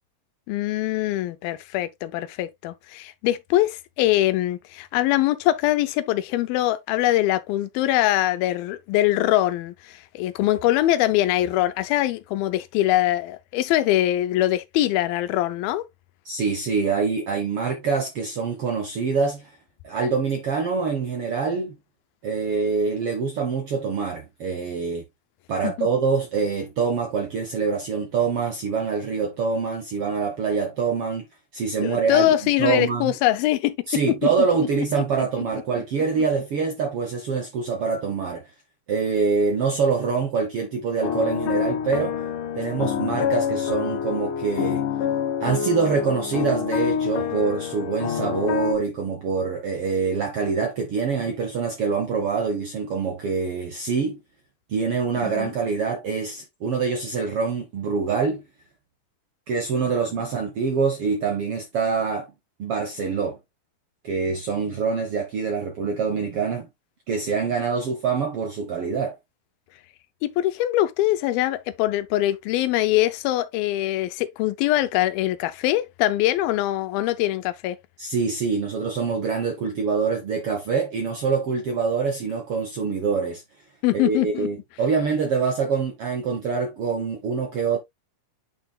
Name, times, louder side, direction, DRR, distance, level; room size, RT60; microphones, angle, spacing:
voice 1, 0.5-15.9 25.6-25.9 31.8-33.8 34.1-34.2 55.4-55.5 70.2-77.8 83.8-84.5, left 14 dB, 85° left, 2.5 m, -23 dB
voice 2, 16.2-19.5 19.8-21.8 22.2-25.0 25.5-31.2 31.5-32.3 32.6-33.1 33.9-38.4 38.9-42.2 42.5-44.8 45.4-54.2 54.7-58.4 59.5-62.3 62.6-63.4 64.0-66.7 67.1-69.2 78.0-83.4 83.9-87.8, right 5 dB, 65° right, 1.4 m, -25 dB
sound 1, 41.0-48.8, left 8 dB, 65° left, 2.5 m, -27 dB
8.9 x 5.9 x 2.3 m
omnidirectional pair, 4.2 m